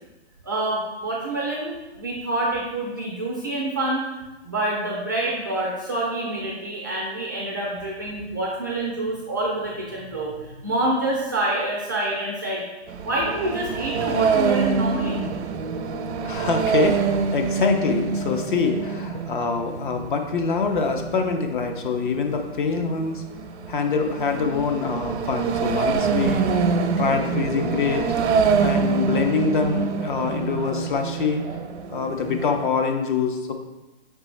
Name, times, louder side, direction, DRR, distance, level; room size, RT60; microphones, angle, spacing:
voice 1, 0.4-4.0 4.4-12.6 13.0-15.2, right 1 dB, 20° right, -4 dB, 0.3 m, -27 dB
sound 1, 12.9-32.7, right 5 dB, 85° right, 0.6 m, -26 dB
voice 2, 16.2-23.2 23.7-26.5 27.0-28.1 28.6-31.4 31.9-33.5, left 5 dB, 50° left, 5 dB, 0.6 m, -25 dB
5.1 x 3.3 x 3.1 m, 1.1 s
hypercardioid pair, 155°, 33 cm